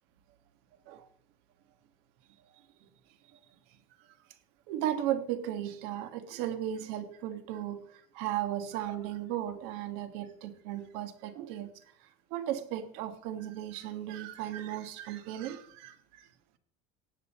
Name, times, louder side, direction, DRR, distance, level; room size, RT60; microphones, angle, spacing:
voice 1, 4.7-11.7 12.3-16.3, right 11 dB, 70° right, 1.4 m, -36 dB
17.5 x 7.2 x 4.2 m
cardioid pair, 140°, 18 cm